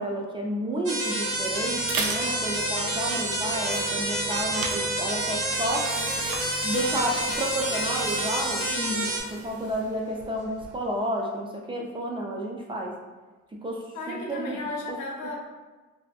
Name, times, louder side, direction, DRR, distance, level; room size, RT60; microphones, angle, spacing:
voice 1, 0.0-5.9 6.6-8.6 8.9-9.1 9.4-12.9 13.6-14.6, right 1 dB, 15° right, -1 dB, 0.4 m, -31 dB
sound 1, 0.9-9.2, right 1 dB, 45° right, 0.8 m, -28 dB
sound 2, 1.1-10.9, right 3 dB, 80° right, 0.5 m, -38 dB
voice 2, 8.6-9.1 13.9-15.4, left 2 dB, 85° left, 0 dB, 0.6 m, -34 dB
2.6 x 2.5 x 2.3 m, 1.2 s
cardioid pair, 90°, 30 cm